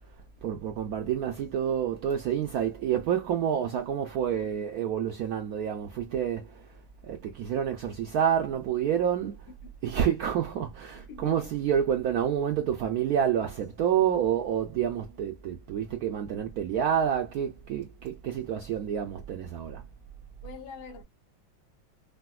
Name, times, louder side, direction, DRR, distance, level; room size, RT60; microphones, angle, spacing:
voice 1, 0.4-6.7 7.0-9.4 9.8-19.8, right 9 dB, 75° right, 0.8 m, -28 dB
voice 2, 11.0-11.5 18.4-18.5 20.4-21.0, left 5 dB, 90° left, 1.7 m, -44 dB
4.9 x 2.1 x 2.3 m
omnidirectional pair, 2.1 m